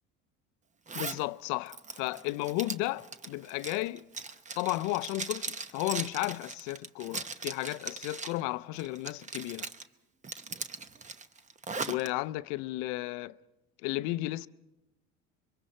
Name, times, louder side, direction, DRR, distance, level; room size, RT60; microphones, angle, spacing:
voice 1, 0.9-4.0 4.6-9.7 11.9-13.3 13.8-14.5, left 19 dB, 75° left, 0.6 m, -33 dB
Zipper (clothing), 0.9-1.2 1.7-8.4 8.8-9.8 10.2-12.1, right 4 dB, 25° right, 0.9 m, -39 dB
26.0 x 23.5 x 4.3 m
supercardioid pair, 95°, 30 cm